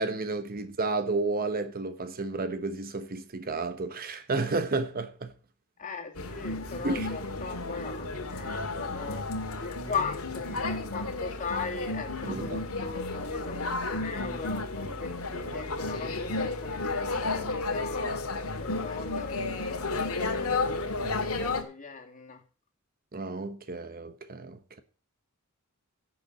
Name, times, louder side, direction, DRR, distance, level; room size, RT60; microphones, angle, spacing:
voice 1, 0.0-5.3 6.8-7.1 12.2-12.6 23.1-24.8, right 3 dB, 40° right, 1.0 m, -32 dB
voice 2, 5.8-9.3 9.6-20.6 21.3-22.4, left 5 dB, 35° left, 2.4 m, -39 dB
sound 1, 6.2-21.6, left 3 dB, 70° left, 2.0 m, -32 dB
11.0 x 7.0 x 6.6 m
head